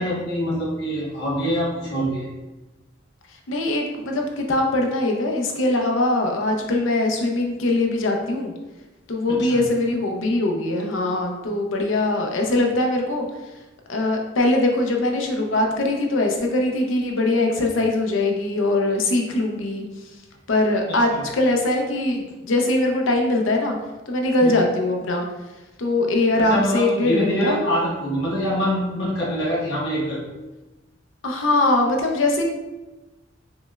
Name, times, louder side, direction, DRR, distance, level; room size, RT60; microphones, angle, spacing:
voice 1, 0.0-2.2 9.3-9.6 21.1-21.2 24.4-24.5 26.4-30.2, equal, 60° left, -7 dB, 0.9 m, -24 dB
voice 2, 3.5-8.5 9.1-13.2 13.9-19.8 20.5-23.8 24.1-25.2 25.8-27.6 31.2-32.4, left 2 dB, 85° left, 2 dB, 0.6 m, -22 dB
5.1 x 2.1 x 2.3 m, 1.1 s
head